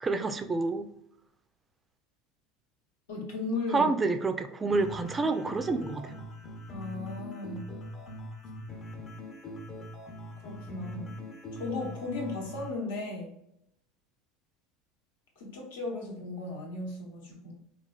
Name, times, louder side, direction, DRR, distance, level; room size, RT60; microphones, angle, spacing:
voice 1, 0.0-0.9 3.7-6.2, right 3 dB, 20° right, 9 dB, 0.3 m, -28 dB
voice 2, 3.1-3.9 4.6-4.7 6.7-7.7 10.4-11.1 11.6-13.3 15.4-17.5, left 3 dB, 85° left, -1 dB, 0.9 m, -36 dB
sound 1, 4.7-12.7, equal, 40° left, 0.6 m, -42 dB
3.1 x 2.3 x 2.2 m, 0.79 s
hypercardioid pair, 90°, 0 cm